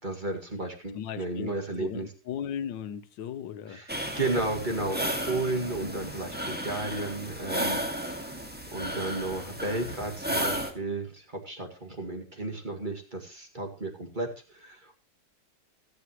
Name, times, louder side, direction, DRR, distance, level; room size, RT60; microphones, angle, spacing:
voice 1, 0.0-2.1 3.7-8.4 8.7-15.0, right 2 dB, 25° right, 2.2 m, -33 dB
voice 2, 0.9-3.8, left 9 dB, 90° left, 1.6 m, -37 dB
sound 1, 3.9-10.7, equal, 5° right, 1.8 m, -33 dB
24.5 x 8.2 x 3.0 m
omnidirectional pair, 1.9 m